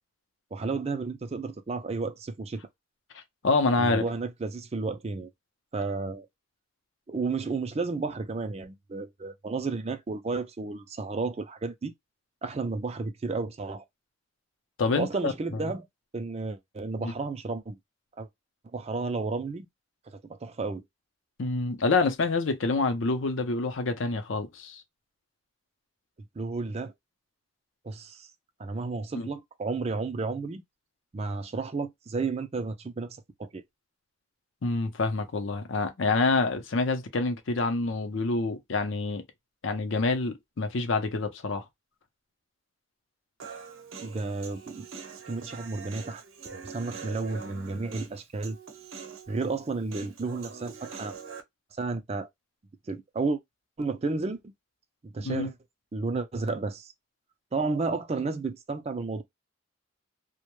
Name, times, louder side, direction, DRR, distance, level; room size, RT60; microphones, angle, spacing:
voice 1, 0.5-2.6 3.8-5.3 5.7-6.3 7.1-11.9 12.4-13.8 15.0-15.9 16.1-17.8 18.2-18.3 18.7-19.7 20.1-20.8 26.4-26.9 27.8-28.3 28.6-30.6 31.1-33.6 44.0-45.0 45.3-46.2 46.5-48.6 49.3-51.2 51.8-52.3 52.9-53.4 53.8-54.5 55.0-55.5 55.9-56.9 57.5-59.2, right 3 dB, 30° right, 0.4 m, -32 dB
voice 2, 3.1-4.0 14.8-15.3 15.6-15.7 17.0-17.1 21.4-24.8 29.1-29.3 34.6-39.2 39.6-41.6 55.2-55.5, left 3 dB, 70° left, 0.6 m, -27 dB
Human voice, 43.4-51.4, right 6 dB, 80° right, 0.7 m, -44 dB
2.2 x 2.1 x 2.9 m
head